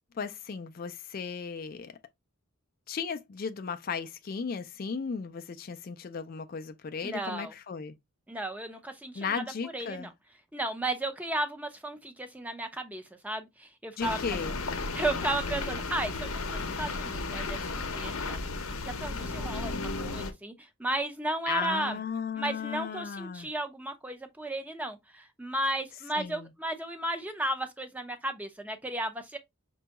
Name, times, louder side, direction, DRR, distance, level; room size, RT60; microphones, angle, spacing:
voice 1, 0.2-1.9 2.9-7.9 9.2-10.1 14.0-14.5 21.5-23.5 26.2-26.5, left 6 dB, 40° left, 0.3 m, -35 dB
voice 2, 7.0-7.5 8.3-10.1 10.5-14.4 14.9-18.4 18.8-22.0 22.3-29.4, right 1 dB, 5° right, 0.6 m, -34 dB
sound 1, 14.0-20.3, left 3 dB, 80° left, 0.7 m, -34 dB
6.0 x 2.3 x 2.8 m
head